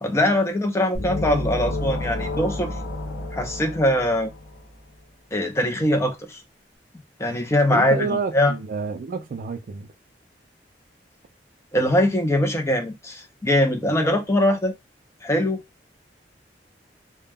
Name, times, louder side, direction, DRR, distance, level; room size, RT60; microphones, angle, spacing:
voice 1, 0.0-2.7 3.3-4.3 5.3-6.4 7.2-8.5 11.7-14.7 15.2-15.6, left 1 dB, 15° left, 0.5 m, -22 dB
sound 1, 0.9-4.7, left 2 dB, 85° left, 0.8 m, -30 dB
voice 2, 7.7-9.9, right 4 dB, 50° right, 0.3 m, -29 dB
2.2 x 2.1 x 3.3 m
head